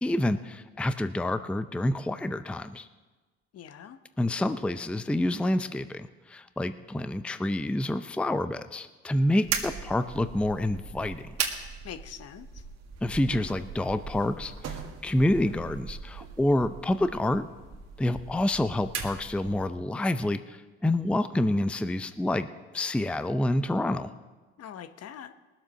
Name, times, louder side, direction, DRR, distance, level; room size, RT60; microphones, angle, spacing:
voice 1, 0.0-2.9 4.2-11.2 13.0-17.5 18.0-22.5 22.7-24.1, left 1 dB, 5° left, 12 dB, 0.5 m, -28 dB
voice 2, 3.5-4.0 11.8-12.6 24.6-25.3, left 9 dB, 55° left, 11 dB, 1.0 m, -43 dB
sound 1, 9.4-19.8, right 6 dB, 60° right, 1.9 m, -38 dB
19.0 x 7.4 x 6.3 m, 1.3 s
supercardioid pair, 70°, 30 cm